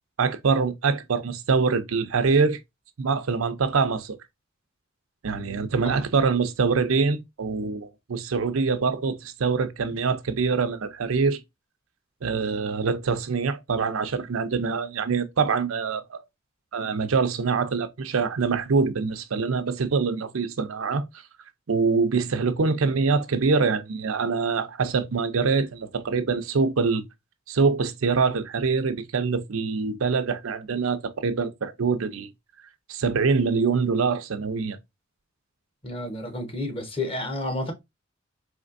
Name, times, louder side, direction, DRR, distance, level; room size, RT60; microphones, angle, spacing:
voice 1, 0.2-2.6 3.0-4.2 5.2-11.4 12.2-16.2 16.7-21.0 21.7-27.0 27.5-32.3 32.9-34.8, right 4 dB, 90° right, 0.6 m, -24 dB
voice 2, 35.8-37.7, left 1 dB, 25° left, 1.0 m, -30 dB
4.3 x 3.2 x 2.5 m
head